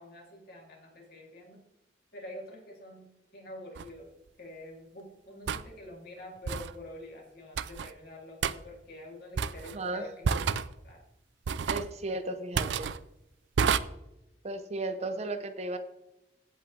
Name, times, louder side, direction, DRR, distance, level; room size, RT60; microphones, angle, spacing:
voice 1, 0.0-1.6 2.1-4.1 4.4-11.0, left 1 dB, 60° left, -1 dB, 3.0 m, -47 dB
sound 1, 3.8-3.9 5.5-5.7 6.5-6.7 7.6-7.9 8.4-8.6 9.4-9.8 10.2-10.7 11.5-11.9 12.6-13.0 13.6-13.8, right 6 dB, 85° right, 0.4 m, -29 dB
voice 2, 9.7-10.1 11.7-12.9 14.4-15.8, right 2 dB, 40° right, 8 dB, 0.7 m, -35 dB
16.0 x 5.5 x 3.3 m, 0.88 s
head